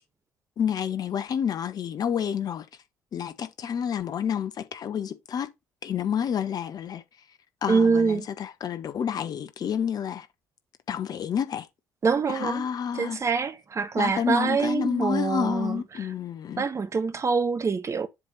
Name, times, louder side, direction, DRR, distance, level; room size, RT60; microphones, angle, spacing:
voice 1, 0.6-2.6 3.1-5.5 5.8-7.0 7.6-10.3 10.9-11.7 12.3-13.2 14.0-16.7, left 8 dB, 45° left, 1.0 m, -29 dB
voice 2, 7.7-8.3 12.0-12.7 12.9-16.1 16.6-18.1, right 5 dB, 35° right, 1.0 m, -25 dB
7.4 x 3.1 x 5.3 m
figure-of-eight pair, 45°, 9 cm